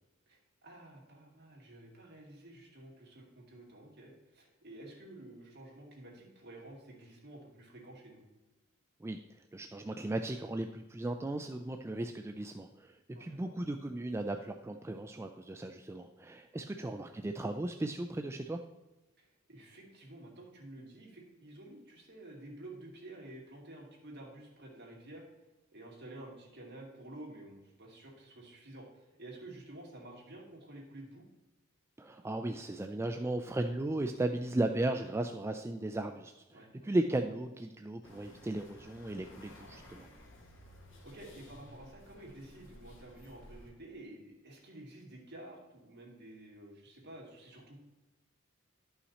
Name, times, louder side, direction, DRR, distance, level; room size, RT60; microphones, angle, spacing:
voice 1, 0.3-8.2 13.1-13.5 16.5-16.8 19.2-25.2 25.7-31.2 36.5-36.7 41.0-47.8, right 1 dB, 55° right, -2 dB, 2.5 m, -51 dB
voice 2, 9.5-18.6 32.0-40.1, right 2 dB, 10° right, 5 dB, 0.3 m, -36 dB
sound 1, 38.0-43.7, left 1 dB, 65° left, 1.7 m, -55 dB
11.5 x 5.7 x 4.1 m, 1.1 s
head